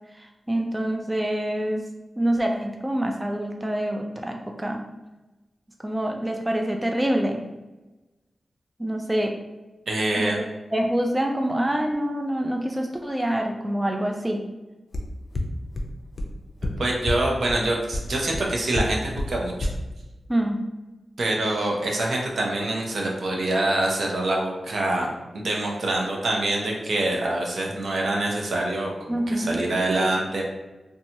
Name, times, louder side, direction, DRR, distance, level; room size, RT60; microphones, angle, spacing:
voice 1, 0.1-1.8 2.2-4.8 5.8-7.4 8.8-9.4 10.2-10.3 10.7-14.4 20.3-20.6 29.1-29.6, right 1 dB, 20° right, 2 dB, 0.3 m, -26 dB
voice 2, 9.9-10.4 16.8-19.7 21.2-30.4, right 1 dB, 75° right, -1 dB, 0.6 m, -25 dB
sound 1, 14.9-15.0 15.3-15.4 15.7-15.8 16.2-16.3 16.6-16.7 17.1-17.2 17.5-17.6 17.9-18.0 18.3-18.4 18.7-18.8 19.2-19.3 19.6-19.7, left 2 dB, 55° left, 0.4 m, -25 dB
2.8 x 2.2 x 2.6 m, 1.1 s
cardioid pair, 50°, 0 cm